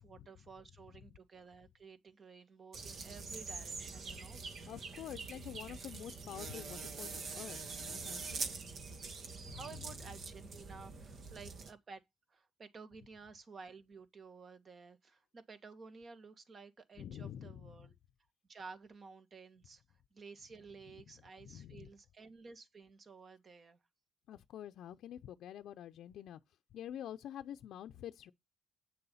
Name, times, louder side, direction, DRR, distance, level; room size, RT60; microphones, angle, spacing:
voice 1, 0.0-4.4 9.2-12.0 12.3-17.9 18.5-19.8 20.1-23.8, right 4 dB, 45° right, 2.0 m, -53 dB
sound 1, 2.7-11.7, right 4 dB, 65° right, 1.9 m, -44 dB
voice 2, 4.7-8.4 9.4-9.6 17.0-17.9 21.4-21.9 24.3-26.4 26.7-28.3, left 10 dB, 75° left, 0.6 m, -47 dB
9.1 x 6.8 x 5.6 m
cardioid pair, 90°, 0 cm